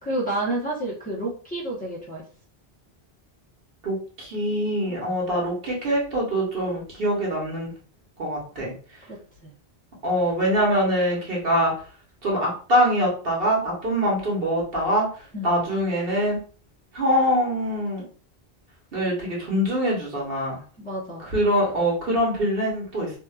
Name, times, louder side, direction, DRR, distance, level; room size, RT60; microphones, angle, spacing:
voice 1, 0.0-2.2 4.9-5.0 9.1-9.5 15.3-15.6 20.8-21.2, right 1 dB, 10° left, -6 dB, 0.7 m, -30 dB
voice 2, 3.8-7.7 8.2-8.7 10.0-11.7 12.2-15.1 15.4-16.4 16.9-18.0 18.9-20.6 21.2-23.1, equal, 65° right, -4 dB, 1.3 m, -24 dB
2.7 x 2.4 x 2.3 m, 0.41 s
omnidirectional pair, 1.0 m